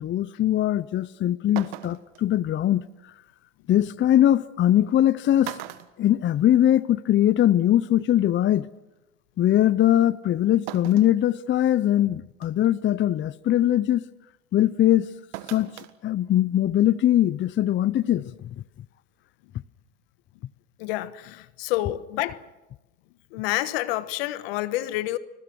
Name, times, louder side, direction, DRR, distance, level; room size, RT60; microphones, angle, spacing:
voice 1, 0.0-2.8 3.7-5.6 6.0-8.7 9.4-14.0 14.5-15.1 15.5-15.7 16.0-18.3, left 12 dB, 40° left, 0.7 m, -21 dB
sound 1, 1.0-1.1 1.6-2.2 3.8-3.9 4.9-5.1 5.4-6.8 7.2-7.3 8.5-8.6 10.7-11.2 11.7-11.8 12.4-12.7 15.3-15.9 16.3-16.4, right 16 dB, 80° right, 1.5 m, -38 dB
voice 2, 20.8-22.4 23.3-25.2, left 16 dB, 80° left, 1.4 m, -28 dB
30.0 x 22.0 x 6.2 m
supercardioid pair, 85°, 30 cm